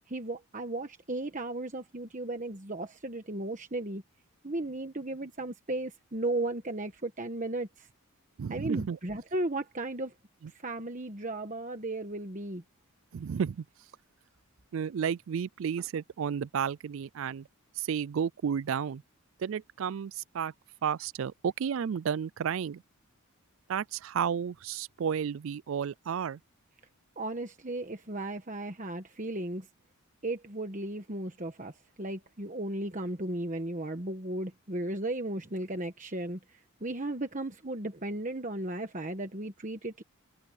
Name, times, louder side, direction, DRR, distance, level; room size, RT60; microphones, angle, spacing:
voice 1, 0.0-4.0 4.4-7.9 8.5-10.1 10.5-12.6 27.2-29.7 30.2-40.0, right 2 dB, 35° right, 1.3 m, -35 dB
voice 2, 8.4-9.0 13.1-13.6 14.7-17.5 17.8-19.0 19.4-20.5 20.8-22.8 23.7-26.4, right 7 dB, 65° right, 0.3 m, -32 dB
head